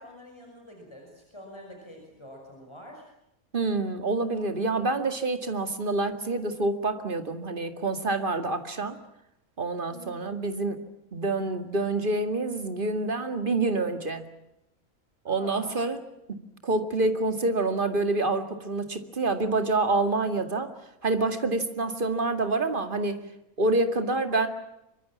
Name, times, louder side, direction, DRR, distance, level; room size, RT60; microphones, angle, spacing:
voice 1, 0.0-3.1 9.9-10.3 15.3-15.8, equal, 20° left, 1 dB, 5.9 m, -46 dB
voice 2, 3.5-9.0 9.6-10.8 11.1-14.3 15.3-16.0 16.3-20.7 21.0-23.2 23.6-24.5, right 2 dB, 35° right, 8 dB, 2.3 m, -27 dB
25.5 x 23.5 x 7.3 m, 0.85 s
omnidirectional pair, 1.5 m